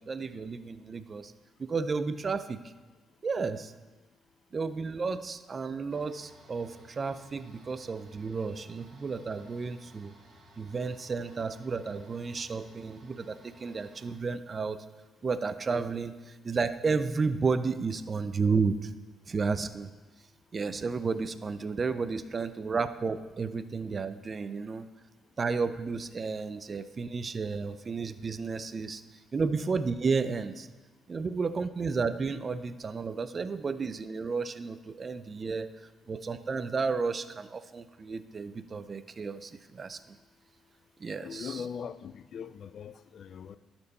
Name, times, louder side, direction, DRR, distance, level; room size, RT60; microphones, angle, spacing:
voice 1, 0.0-1.3 1.6-2.6 3.2-3.7 4.5-10.1 10.6-14.8 15.2-18.9 19.3-19.9 20.5-24.8 25.4-29.0 29.3-30.7 31.1-35.7 36.1-40.0 41.0-41.6, right 4 dB, 40° right, 0.4 m, -32 dB
sound 1, 5.9-14.2, right 1 dB, 55° right, 1.4 m, -57 dB
voice 2, 41.2-43.6, left 7 dB, 60° left, 0.3 m, -40 dB
12.0 x 4.4 x 4.1 m
cardioid pair, 90°, 0 cm